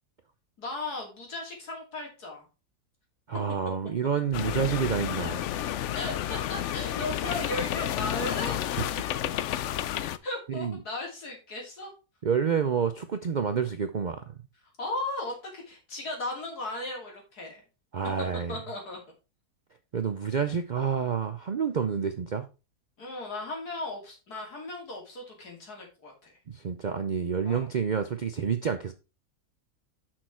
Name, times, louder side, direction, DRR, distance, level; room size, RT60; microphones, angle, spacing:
voice 1, 0.6-2.4 5.9-8.6 10.2-11.9 14.8-17.6 18.5-19.0 23.0-26.3 27.4-27.7, left 2 dB, 90° left, 3.2 m, -36 dB
voice 2, 3.3-5.5 10.5-10.8 12.2-14.4 17.9-18.5 19.9-22.5 26.5-28.9, right 6 dB, 65° right, 0.4 m, -28 dB
sound 1, 4.3-10.2, left 11 dB, 65° left, 0.7 m, -31 dB
6.4 x 6.0 x 4.4 m
omnidirectional pair, 1.6 m